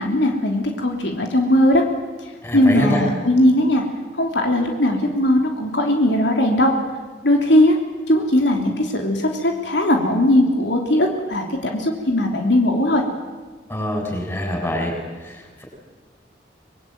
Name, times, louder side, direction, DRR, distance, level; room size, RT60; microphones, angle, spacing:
voice 1, 0.0-1.8 2.5-3.8 4.1-6.7 7.2-7.8 8.1-13.0, left 1 dB, 80° left, 2 dB, 3.2 m, -18 dB
voice 2, 2.4-3.0 13.7-15.0 15.2-15.6, equal, 15° left, 1 dB, 7.3 m, -25 dB
25.5 x 21.0 x 9.4 m, 1.3 s
head